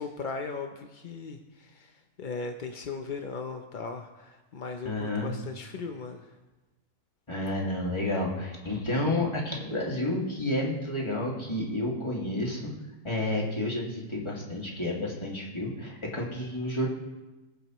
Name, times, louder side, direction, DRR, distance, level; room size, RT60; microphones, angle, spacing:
voice 1, 0.0-1.9 2.2-6.2, left 4 dB, 55° left, 5 dB, 0.5 m, -37 dB
voice 2, 4.8-5.3 7.3-12.7 13.0-16.9, left 1 dB, 15° left, -3 dB, 2.1 m, -30 dB
21.5 x 7.8 x 3.1 m, 1.1 s
omnidirectional pair, 1.7 m